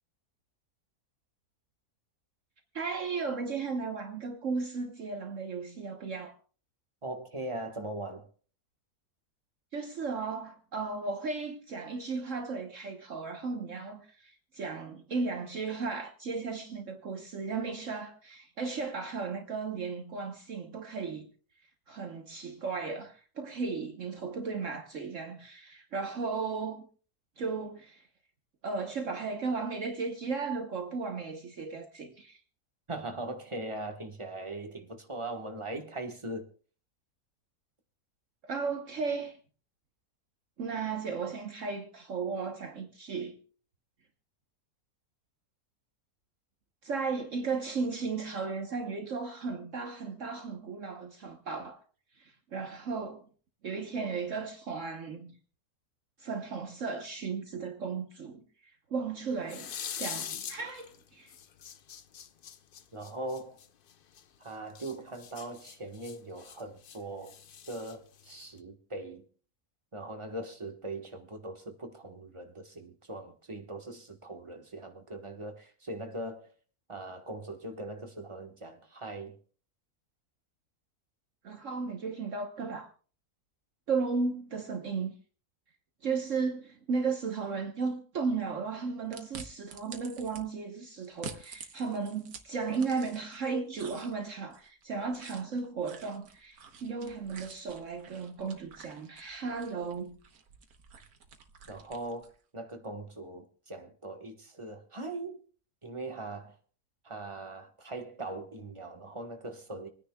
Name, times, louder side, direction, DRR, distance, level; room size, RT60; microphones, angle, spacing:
voice 1, 2.7-6.4 9.7-21.3 21.9-26.8 27.4-28.0 28.6-32.4 38.4-39.4 40.6-43.4 46.8-51.8 52.2-53.3 53.6-55.4 56.2-58.4 58.9-59.7 60.0-61.3 81.4-82.9 83.9-85.1 86.0-100.2, right 4 dB, 55° right, 1.4 m, -35 dB
voice 2, 7.0-8.3 32.9-36.5 62.9-63.6 64.4-67.4 67.7-69.2 69.9-76.5 76.9-79.4 101.7-105.4 105.8-106.6 107.0-109.9, right 2 dB, 20° right, 1.3 m, -40 dB
sound 1, 59.4-61.0 61.3-64.2 64.7-67.0 67.2-68.6, left 8 dB, 55° left, 0.6 m, -42 dB
sound 2, 89.1-90.4 91.0-93.4 93.7-102.4, right 5 dB, 80° right, 1.6 m, -49 dB
27.0 x 9.9 x 2.3 m
omnidirectional pair, 1.6 m